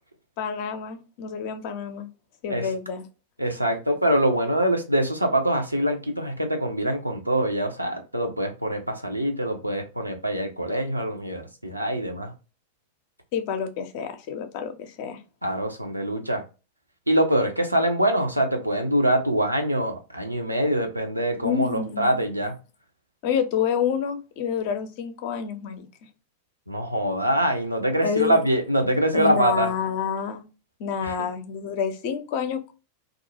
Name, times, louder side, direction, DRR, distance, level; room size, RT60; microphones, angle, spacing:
voice 1, 0.4-2.1 2.4-3.0 13.3-15.2 21.4-22.2 23.2-25.9 28.0-28.4 29.1-30.5 30.8-32.7, left 7 dB, 50° left, 0.5 m, -28 dB
voice 2, 3.4-12.3 15.4-16.4 17.1-22.6 26.7-29.7 31.0-31.2, right 1 dB, 85° right, 0.5 m, -24 dB
2.3 x 2.1 x 2.7 m
figure-of-eight pair, 90°, 0 cm